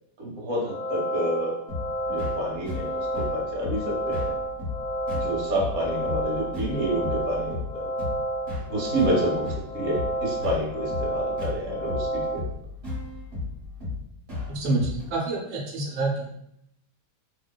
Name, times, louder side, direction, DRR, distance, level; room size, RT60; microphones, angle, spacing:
voice 1, 0.2-1.5 2.1-4.3 5.1-7.8 8.7-12.4, right 1 dB, 60° right, -3 dB, 1.0 m, -29 dB
sound 1, 0.6-12.4, right 1 dB, 80° left, 0.6 m, -30 dB
sound 2, 1.7-15.1, left 3 dB, 40° right, 1.2 m, -35 dB
voice 2, 14.5-16.3, right 2 dB, 85° right, -2 dB, 1.2 m, -27 dB
2.7 x 2.1 x 2.2 m, 0.75 s
omnidirectional pair, 1.7 m